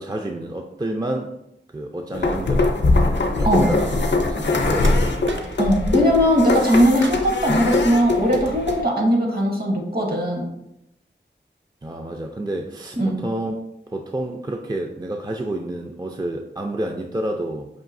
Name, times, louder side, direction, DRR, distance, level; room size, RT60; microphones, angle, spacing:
voice 1, 0.0-1.3 1.7-5.2 11.8-13.6 13.9-17.7, right 1 dB, 20° right, 2 dB, 0.3 m, -29 dB
sound 1, 2.1-8.8, left 3 dB, 70° left, 0.5 m, -22 dB
sound 2, 3.6-4.2 4.8-5.9 6.2-6.8 7.0-7.7, right 2 dB, 80° right, 0.5 m, -36 dB
voice 2, 5.6-10.5 13.0-13.2, equal, 55° right, -1 dB, 1.1 m, -19 dB
5.4 x 2.7 x 2.5 m, 0.82 s
wide cardioid pair, 45°, 19 cm